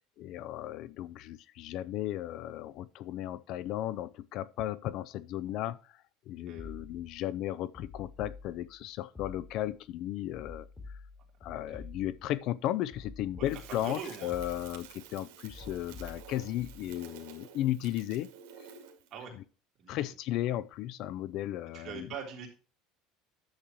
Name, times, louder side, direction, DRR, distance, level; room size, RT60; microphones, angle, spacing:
voice 1, 0.0-5.9 6.3-10.7 11.4-18.3 19.9-22.1, left 13 dB, 55° left, 0.5 m, -35 dB
sound 1, 6.6-7.2 7.7-8.8 9.2-9.8 10.3-12.4 12.9-14.0 14.3-14.9 15.5-16.9, left 3 dB, 15° left, 3.8 m, -48 dB
voice 2, 13.4-14.3 19.1-19.3 19.8-20.1 21.7-22.5, right 7 dB, 45° right, 3.4 m, -43 dB
Crackle, 13.4-19.1, right 9 dB, 90° right, 2.1 m, -51 dB
10.5 x 7.3 x 3.1 m
cardioid pair, 140°, 0 cm